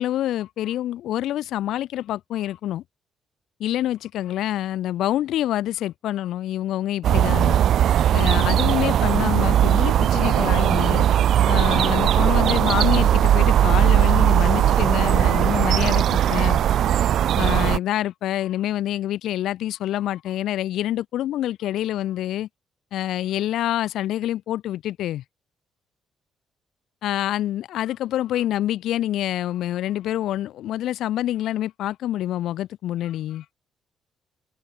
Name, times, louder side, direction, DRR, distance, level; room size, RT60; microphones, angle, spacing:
voice 1, 0.0-2.8 3.6-7.6 8.1-11.1 11.5-16.6 17.4-22.5 22.9-25.2 27.0-33.4, left 13 dB, 80° left, 0.8 m, -26 dB
sound 1, 7.0-17.8, right 10 dB, 70° right, 1.4 m, -18 dB
cardioid pair, 90°, 0 cm